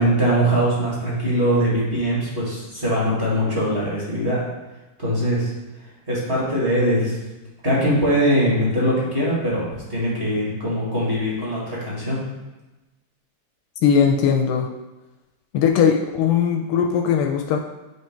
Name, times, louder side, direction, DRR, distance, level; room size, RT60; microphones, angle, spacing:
voice 1, 0.0-4.4 5.0-5.5 6.1-7.2 7.6-12.2, equal, 30° right, -7 dB, 1.9 m, -21 dB
voice 2, 13.8-14.7 15.5-17.6, left 7 dB, 90° left, 3 dB, 1.5 m, -19 dB
8.3 x 3.0 x 4.4 m, 1.1 s
omnidirectional pair, 2.4 m